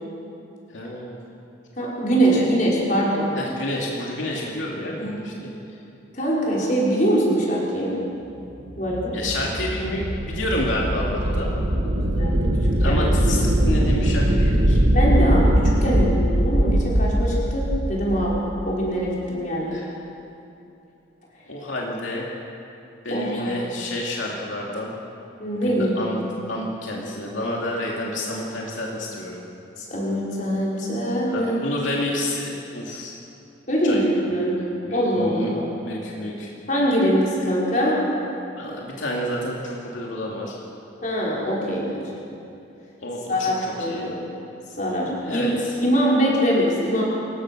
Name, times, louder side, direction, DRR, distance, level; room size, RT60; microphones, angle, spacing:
voice 1, 0.7-1.2 2.3-2.5 3.3-5.5 9.1-11.5 12.8-14.8 19.7-19.9 21.5-22.4 23.0-24.9 25.6-26.2 26.5-29.4 31.3-33.1 33.8-34.1 34.8-35.5 35.8-36.5 38.6-40.5 43.0-44.1 45.2-45.8, left 1 dB, 85° left, -3 dB, 2.7 m, -29 dB
voice 2, 1.7-3.3 4.3-4.4 5.0-5.2 6.1-7.9 8.8-9.2 12.0-12.4 12.9-13.0 14.9-15.5 15.8-18.4 18.7-19.8 23.1-23.6 25.4-26.1 29.8-31.6 33.7-34.6 34.9-35.7 36.7-38.0 41.0-42.0 43.3-44.3 44.7-45.5 45.8-47.0, equal, 40° left, -5 dB, 5.4 m, -23 dB
sound 1, 8.6-18.7, right 1 dB, 55° right, 1.7 m, -21 dB
28.0 x 15.5 x 6.3 m, 2.7 s
head